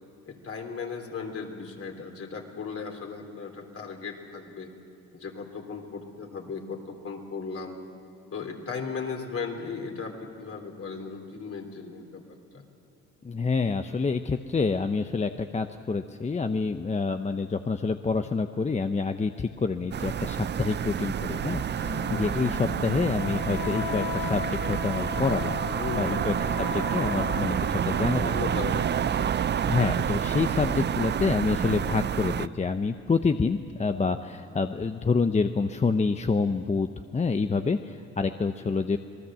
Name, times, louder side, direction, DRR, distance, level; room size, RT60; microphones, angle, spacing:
voice 1, 0.3-4.7 5.1-7.8 8.3-12.2 12.5-12.6 22.1-22.5 25.7-26.5 28.1-29.5, left 5 dB, 50° left, 3 dB, 3.5 m, -37 dB
voice 2, 13.2-25.6 26.0-28.4 29.7-36.9 37.1-39.0, left 4 dB, 25° left, 8 dB, 0.7 m, -27 dB
sound 1, 19.9-32.5, right 8 dB, 35° right, 0.5 m, -29 dB
Wind instrument woodwind instrument, 21.8-28.0, left 8 dB, 85° left, 1.4 m, -37 dB
27.0 x 19.0 x 7.6 m, 2.9 s
cardioid pair, 90°, 30 cm